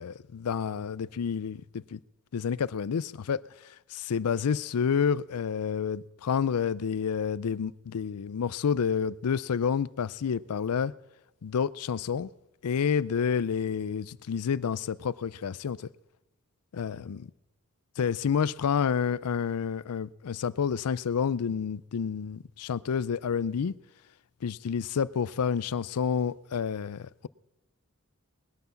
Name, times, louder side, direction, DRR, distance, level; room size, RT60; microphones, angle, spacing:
voice 1, 0.0-2.0 2.3-3.4 3.9-10.9 11.4-12.3 12.6-15.8 16.7-17.2 18.0-23.7 24.4-27.3, left 7 dB, 90° left, 0.4 m, -29 dB
19.5 x 9.4 x 7.0 m
head